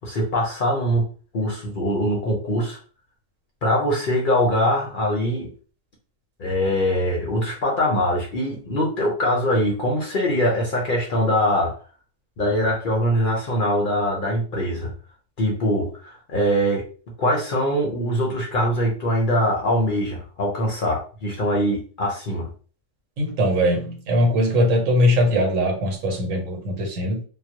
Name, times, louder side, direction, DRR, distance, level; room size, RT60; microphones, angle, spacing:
voice 1, 0.0-1.1 1.3-2.8 3.6-5.5 6.4-11.8 12.4-14.9 15.4-16.9 17.2-22.5, equal, 55° left, 0.6 m, -22 dB
voice 2, 23.2-27.2, equal, 85° right, 1.1 m, -21 dB
2.2 x 2.0 x 2.7 m
omnidirectional pair, 1.3 m